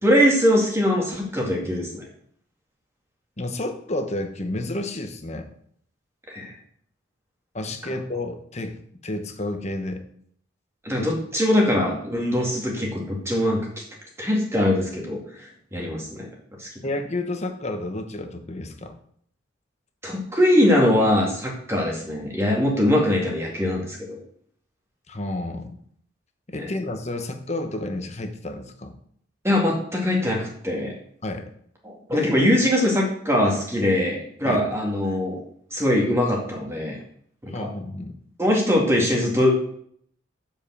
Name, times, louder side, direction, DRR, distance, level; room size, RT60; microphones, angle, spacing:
voice 1, 0.0-2.0 6.3-6.5 10.8-13.8 14.2-16.3 16.6-16.7 20.0-24.2 26.6-26.7 29.4-30.9 31.8-35.4 35.7-37.0 37.4-37.7 38.4-39.5, left 1 dB, 15° right, -1 dB, 2.1 m, -22 dB
voice 2, 3.4-5.5 7.5-8.8 9.0-10.0 11.0-11.1 16.8-19.0 25.1-25.8 26.5-28.9 31.2-31.5 32.1-32.3 34.4-34.6 37.5-38.1, left 2 dB, 35° left, 6 dB, 1.0 m, -30 dB
7.3 x 5.2 x 7.2 m, 0.64 s
head